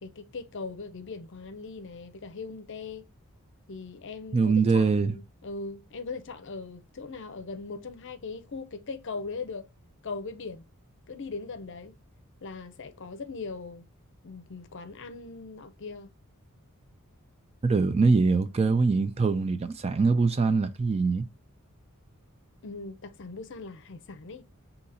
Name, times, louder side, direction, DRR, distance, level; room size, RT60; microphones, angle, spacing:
voice 1, 0.0-3.0 3.7-9.7 10.0-10.7 11.1-12.0 12.4-13.9 14.2-16.1 22.6-24.5, left 4 dB, 55° left, 0.6 m, -39 dB
voice 2, 4.3-5.2 17.6-21.3, right 4 dB, 25° right, 0.3 m, -23 dB
4.1 x 2.8 x 4.0 m
head